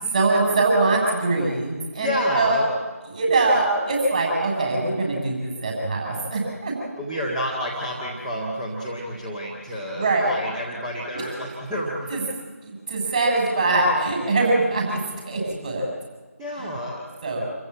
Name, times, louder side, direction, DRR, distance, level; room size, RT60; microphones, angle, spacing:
voice 1, 0.1-2.6 3.1-6.7 9.7-10.3 11.1-11.3 12.1-12.2 12.6-15.9 16.6-16.8 17.2-17.4, right 2 dB, 30° right, -1 dB, 7.5 m, -23 dB
voice 2, 1.9-2.7 6.8-12.3 16.4-17.0, equal, 5° right, -7 dB, 1.7 m, -29 dB
28.0 x 15.0 x 9.0 m, 1.4 s
figure-of-eight pair, 160°, 9 cm